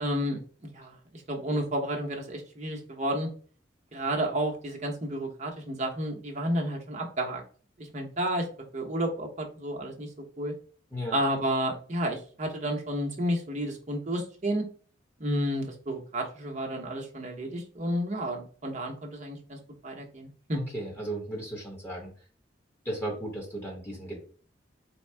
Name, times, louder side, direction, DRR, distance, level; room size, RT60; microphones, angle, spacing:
voice 1, 0.0-3.3 3.9-7.4 7.8-8.4 8.7-10.1 10.4-10.5 11.1-14.6 15.2-19.6 19.8-20.6, right 1 dB, 40° right, 1 dB, 0.9 m, -31 dB
voice 2, 20.5-22.1 22.8-24.2, right 1 dB, 10° left, -3 dB, 1.2 m, -35 dB
4.3 x 2.3 x 3.3 m, 0.41 s
head